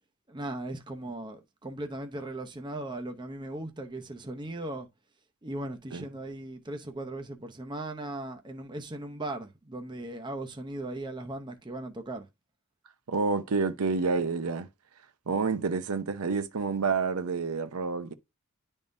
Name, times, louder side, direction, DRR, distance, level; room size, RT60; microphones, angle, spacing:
voice 1, 0.3-4.9 5.4-12.3, right 1 dB, 20° right, 0.6 m, -38 dB
voice 2, 13.1-14.7 15.3-18.1, right 4 dB, 85° right, 0.7 m, -28 dB
10.5 x 3.6 x 2.6 m
head